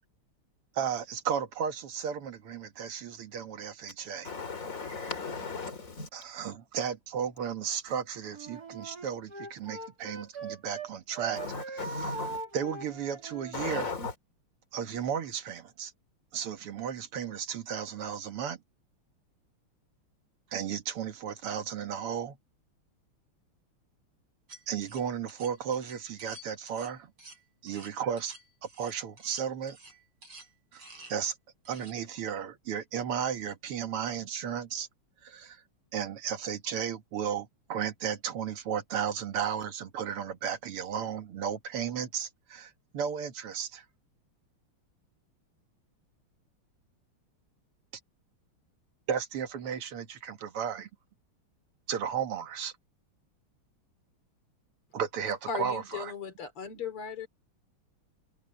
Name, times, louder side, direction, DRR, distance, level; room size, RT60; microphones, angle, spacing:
voice 1, 0.7-4.3 6.1-11.4 11.7-12.1 12.5-13.9 14.7-15.9 16.3-18.6 20.5-22.4 24.7-27.1 27.6-28.3 28.8-29.8 30.7-30.8 31.1-31.4 31.7-34.9 35.2-35.6 35.9-43.8 49.1-50.9 51.9-52.7 54.9-56.1, right 8 dB, 85° right, 2.5 m, -34 dB
voice 2, 4.2-6.1 11.4-12.4 13.5-14.1, left 4 dB, 35° left, 3.7 m, -36 dB
Wind instrument woodwind instrument, 8.3-10.9 11.1-13.9, right 4 dB, 45° right, 3.6 m, -41 dB
sound 1, 24.5-31.2 31.7-31.9, right 2 dB, 70° right, 6.4 m, -51 dB
voice 3, 55.5-57.3, left 6 dB, 80° left, 4.0 m, -37 dB
omnidirectional pair, 2.4 m